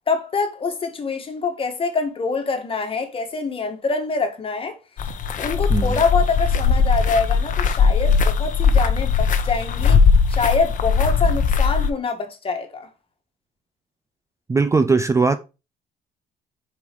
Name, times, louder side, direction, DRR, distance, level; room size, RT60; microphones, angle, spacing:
voice 1, 0.1-4.7 5.4-10.0 10.3-12.9, left 4 dB, 35° left, 1.8 m, -25 dB
sound 1, 5.0-11.9, left 5 dB, 50° left, 0.9 m, -19 dB
voice 2, 5.7-6.0 14.5-15.4, right 4 dB, 15° right, 0.4 m, -19 dB
5.1 x 4.8 x 5.2 m
cardioid pair, 110°, 17 cm